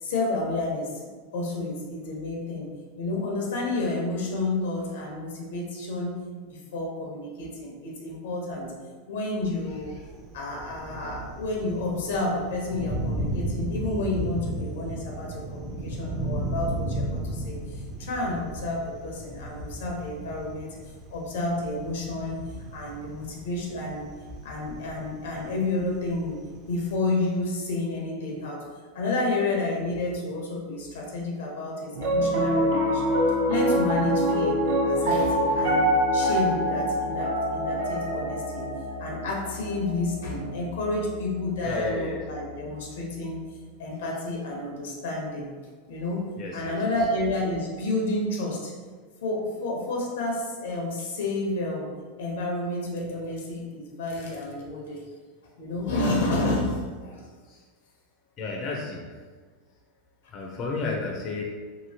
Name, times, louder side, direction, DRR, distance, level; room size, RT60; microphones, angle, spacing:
voice 1, 0.0-2.7 3.0-6.2 6.5-8.7 9.1-10.1 10.3-20.7 21.1-22.4 22.7-24.1 24.4-26.4 26.7-28.6 28.9-33.1 33.5-34.6 34.8-38.7 39.0-43.4 43.8-45.5 45.9-48.7 49.2-51.9 52.2-55.0 55.6-57.2, left 2 dB, 85° left, -1 dB, 0.8 m, -30 dB
Thunder, 9.4-26.9, right 1 dB, 35° right, 0.6 m, -35 dB
Piano, 31.9-42.3, equal, 80° right, 0.7 m, -26 dB
voice 2, 41.6-42.2 46.4-46.7 57.5-57.6 58.4-59.1 60.3-61.6, left 3 dB, 35° left, -1 dB, 0.5 m, -31 dB
2.9 x 2.8 x 2.8 m, 1.5 s
supercardioid pair, 135°, 0 cm